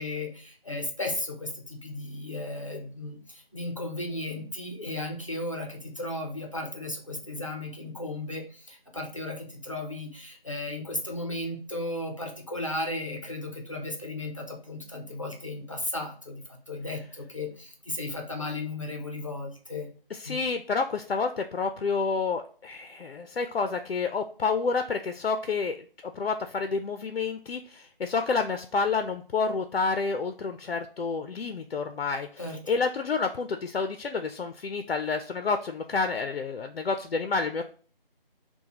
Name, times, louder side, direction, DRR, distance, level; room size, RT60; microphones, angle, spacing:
voice 1, 0.0-19.9 20.2-20.4 32.4-32.6, left 2 dB, 35° left, 2 dB, 0.6 m, -35 dB
voice 2, 20.1-25.8 26.0-32.3 32.7-37.6, left 4 dB, 80° left, 7 dB, 0.5 m, -29 dB
5.7 x 2.2 x 2.8 m, 0.43 s
figure-of-eight pair, 170°, 29 cm